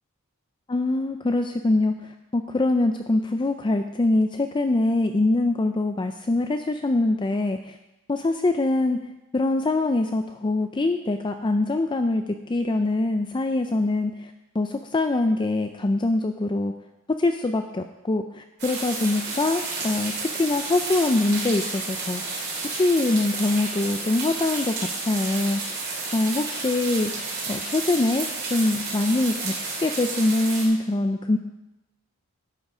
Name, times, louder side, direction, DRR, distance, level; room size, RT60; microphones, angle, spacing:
voice 1, 0.7-1.9 2.3-7.7 8.1-9.0 9.3-12.2 12.5-14.1 14.6-16.7 17.2-22.2 22.7-25.6 26.1-27.1 27.5-29.5 29.8-31.4, left 2 dB, 20° left, 6 dB, 0.4 m, -23 dB
sound 1, 18.6-30.7, right 3 dB, 50° right, 3.0 m, -31 dB
11.0 x 7.7 x 4.9 m, 0.95 s
head